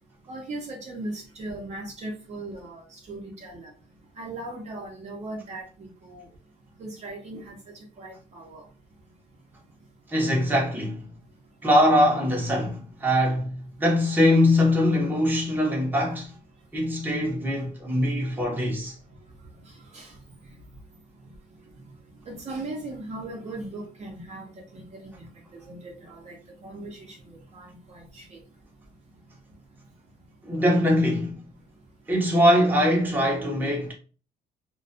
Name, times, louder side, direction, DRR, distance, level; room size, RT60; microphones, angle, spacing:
voice 1, 0.3-3.7 4.2-6.3 6.8-7.6 8.0-8.6 19.9-20.1 22.3-25.3 25.7-26.4 26.6-28.4, right 2 dB, 40° right, 0.8 m, -38 dB
voice 2, 10.1-11.0 11.6-16.3 16.7-19.0 30.4-31.4 32.1-33.9, left 1 dB, 10° right, 0.8 m, -22 dB
2.3 x 2.3 x 2.5 m
cardioid pair, 110°, 17 cm